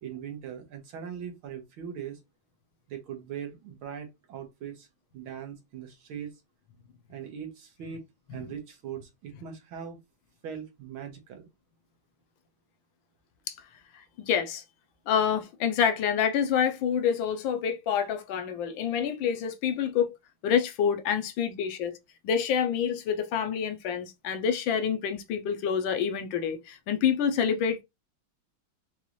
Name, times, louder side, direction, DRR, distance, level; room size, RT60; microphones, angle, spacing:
voice 1, 0.0-2.2 2.9-4.9 5.1-6.3 7.1-8.0 8.3-10.0 10.4-11.5, right 8 dB, 85° right, 1.9 m, -40 dB
voice 2, 14.3-14.6 15.1-20.1 20.4-22.0 22.2-27.8, left 7 dB, 75° left, 1.4 m, -27 dB
5.4 x 2.5 x 3.0 m
omnidirectional pair, 2.2 m